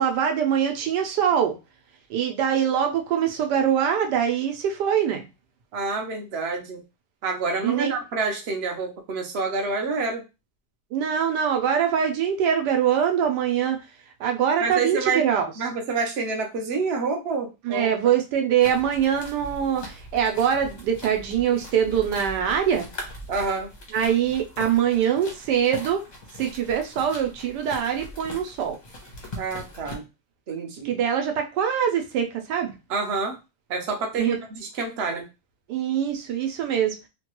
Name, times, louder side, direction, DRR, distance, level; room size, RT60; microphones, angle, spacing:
voice 1, 0.0-1.6 2.1-5.2 7.6-7.9 10.9-13.9 14.2-15.5 17.6-22.9 23.9-26.0 26.4-28.8 30.8-32.7 34.2-34.4 35.7-36.9, right 8 dB, 80° right, 4 dB, 1.2 m, -23 dB
voice 2, 5.7-6.8 7.2-10.2 14.6-15.2 15.6-18.0 23.3-23.7 29.4-30.0 30.5-30.9 32.9-33.4 33.7-35.2, right 4 dB, 55° right, 2 dB, 0.8 m, -28 dB
sound 1, 18.6-29.9, left 1 dB, 40° left, 0.7 m, -41 dB
3.1 x 2.2 x 3.0 m, 0.27 s
omnidirectional pair, 1.8 m